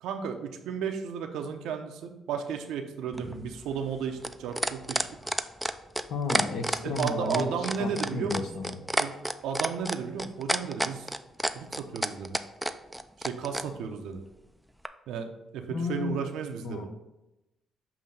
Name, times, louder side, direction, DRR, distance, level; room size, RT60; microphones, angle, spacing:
voice 1, 0.0-5.1 6.8-9.2 9.4-11.1 11.5-12.4 13.2-14.2 15.1-16.9, right 6 dB, 85° right, 5 dB, 0.7 m, -34 dB
sound 1, 3.1-13.7 14.8-14.9, right 1 dB, 5° right, 0.4 m, -29 dB
voice 2, 6.1-8.8 15.7-16.3 16.6-16.9, left 3 dB, 70° left, 5 dB, 0.9 m, -33 dB
7.2 x 2.8 x 5.3 m, 0.95 s
cardioid pair, 90°, 0 cm